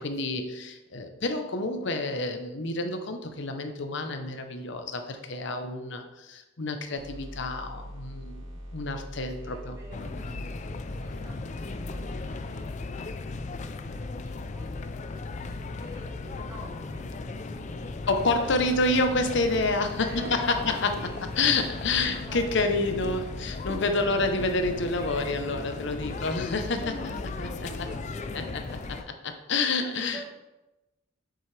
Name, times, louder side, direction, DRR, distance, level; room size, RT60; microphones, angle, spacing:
voice 1, 0.0-8.5 8.7-9.8 18.1-27.9 28.3-28.6 29.2-30.2, left 2 dB, 60° left, 7 dB, 0.8 m, -28 dB
sound 1, 7.0-12.7, equal, 85° right, 2.2 m, -42 dB
voice 2, 9.4-19.0 19.9-21.3 21.8-22.4 24.0-24.2 26.0-26.3 26.6-29.1 29.7-30.3, right 1 dB, 15° right, -3 dB, 1.4 m, -49 dB
sound 2, 9.9-29.0, left 3 dB, 35° left, 0.4 m, -36 dB
sound 3, 19.1-28.2, right 2 dB, 50° right, 0.8 m, -49 dB
7.4 x 6.3 x 3.3 m, 1.0 s
head